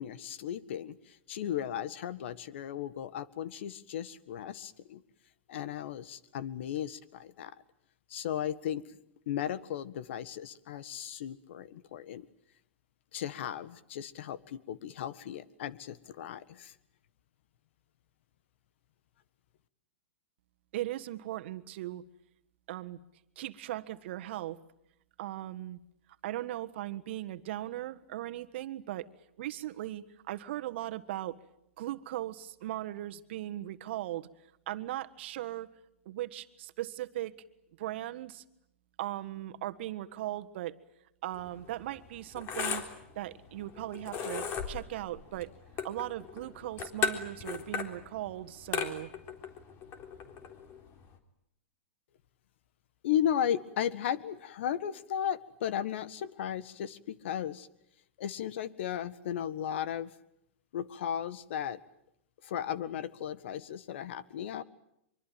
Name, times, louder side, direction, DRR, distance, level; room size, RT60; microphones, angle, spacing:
voice 1, 0.0-5.0 5.5-7.5 8.1-8.9 9.3-12.3 13.1-16.7 53.0-57.7 58.2-60.1 60.7-61.8 62.4-64.6, left 10 dB, 65° left, 15 dB, 1.7 m, -35 dB
voice 2, 20.7-22.0 22.7-23.0 23.4-24.6 25.2-25.8 26.2-29.1 29.4-31.4 31.8-34.3 34.7-35.7 36.0-37.3 37.8-38.4 39.0-40.8 41.2-42.8 43.1-45.5 45.8-49.1, right 14 dB, 60° right, 10 dB, 1.5 m, -38 dB
sound 1, 41.3-51.2, left 6 dB, 35° left, 3.7 m, -38 dB
24.5 x 24.5 x 9.3 m, 0.79 s
hypercardioid pair, 130°, 7 cm